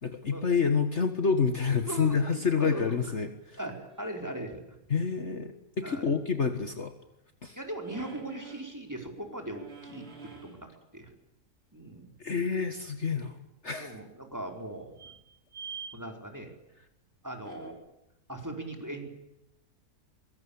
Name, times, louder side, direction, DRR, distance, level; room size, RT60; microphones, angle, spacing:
voice 1, 0.0-3.6 4.9-6.9 7.4-7.6 12.2-13.4 13.6-14.0, left 5 dB, 45° left, 8 dB, 1.9 m, -28 dB
voice 2, 1.8-3.1 3.6-4.6 5.8-6.1 7.5-10.7 10.9-11.1 11.7-12.1 13.7-15.1 15.9-16.5 17.2-17.8 18.3-19.1, right 1 dB, 10° right, 3 dB, 4.9 m, -39 dB
sound 1, 3.6-4.2 7.8-8.8 9.3-10.7 13.8-13.9 15.0-15.9 17.3-17.7, right 5 dB, 40° right, 4.7 m, -46 dB
24.0 x 23.0 x 8.8 m, 0.84 s
omnidirectional pair, 1.7 m